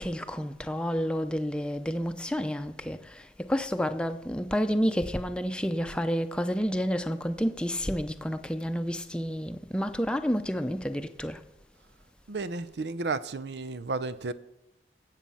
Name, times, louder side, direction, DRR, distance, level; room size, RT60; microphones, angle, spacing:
voice 1, 0.0-3.0 3.5-11.4, equal, 5° left, 0.6 m, -29 dB
voice 2, 12.3-14.3, right 3 dB, 70° right, 0.6 m, -32 dB
18.5 x 7.5 x 5.6 m
head